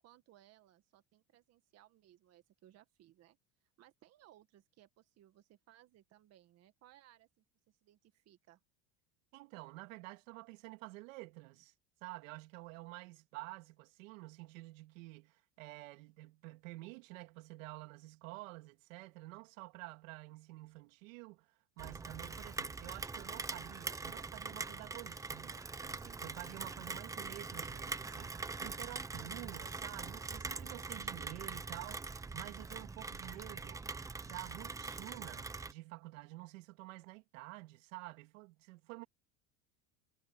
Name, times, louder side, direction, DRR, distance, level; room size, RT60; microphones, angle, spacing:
voice 1, 0.0-3.4 3.8-8.6, right 13 dB, 40° right, 1.7 m, -64 dB
voice 2, 9.3-11.7 12.0-21.5 21.8-33.8 34.2-39.0, right 22 dB, 85° right, 2.8 m, -50 dB
Rain, 21.8-35.7, right 4 dB, 10° right, 0.7 m, -43 dB
cardioid pair, 145°, 38 cm